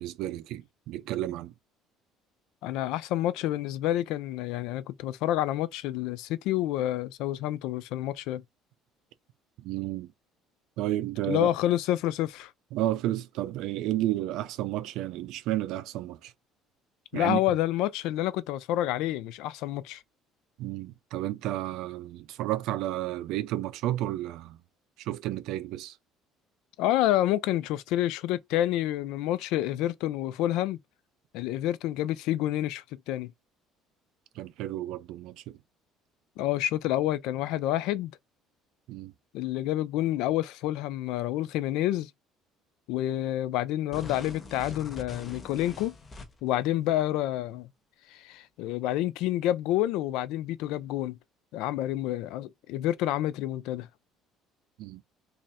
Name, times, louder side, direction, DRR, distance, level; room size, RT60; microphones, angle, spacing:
voice 1, 0.0-1.5 9.6-10.1 10.8-11.5 12.7-16.3 17.1-17.4 20.6-24.6 25.0-26.0 34.4-35.6 38.9-39.1 54.8-55.0, right 14 dB, 65° right, 0.4 m, -32 dB
voice 2, 2.6-8.4 11.3-12.5 17.1-20.0 26.8-30.8 31.3-33.3 36.4-38.1 39.3-42.1 42.9-45.9 46.4-47.7 48.1-51.2 51.5-53.9, left 13 dB, 75° left, 0.4 m, -28 dB
sound 1, 43.9-46.6, left 3 dB, 20° left, 0.6 m, -43 dB
3.0 x 2.5 x 4.1 m
cardioid pair, 165°, 0 cm